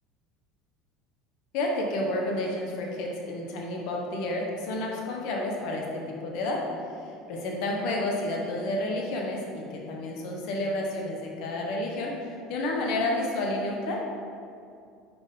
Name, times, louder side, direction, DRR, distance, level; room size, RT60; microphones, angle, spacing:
voice 1, 1.5-6.6 7.3-14.0, left 2 dB, 70° left, -1 dB, 1.2 m, -30 dB
4.9 x 4.5 x 5.6 m, 2.4 s
supercardioid pair, 100°, 0 cm